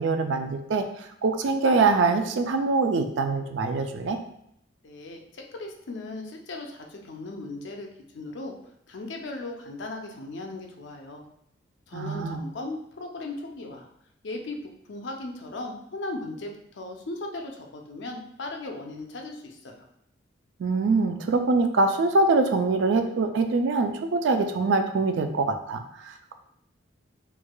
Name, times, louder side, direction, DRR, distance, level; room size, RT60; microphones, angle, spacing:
voice 1, 0.0-4.2 11.9-12.4 20.6-26.3, right 3 dB, 70° right, 7 dB, 0.4 m, -24 dB
voice 2, 4.8-7.9 8.1-8.5 8.9-11.2 11.9-13.9 14.2-19.9, left 2 dB, 70° left, 2 dB, 0.5 m, -37 dB
4.5 x 2.4 x 2.2 m, 0.74 s
head